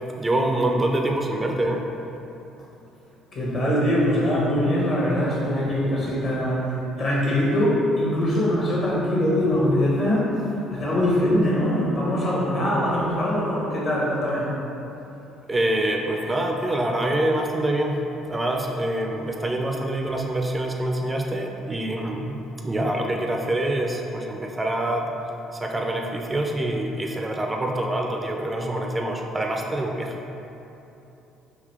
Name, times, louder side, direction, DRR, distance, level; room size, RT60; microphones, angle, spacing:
voice 1, 0.2-1.8 15.5-25.1 25.5-30.2, right 1 dB, 20° right, 2 dB, 0.4 m, -25 dB
voice 2, 3.3-6.6 7.0-10.3 10.7-14.4, left 1 dB, 50° left, -5 dB, 1.2 m, -22 dB
3.9 x 2.8 x 3.1 m, 3.0 s
hypercardioid pair, 55°, 0 cm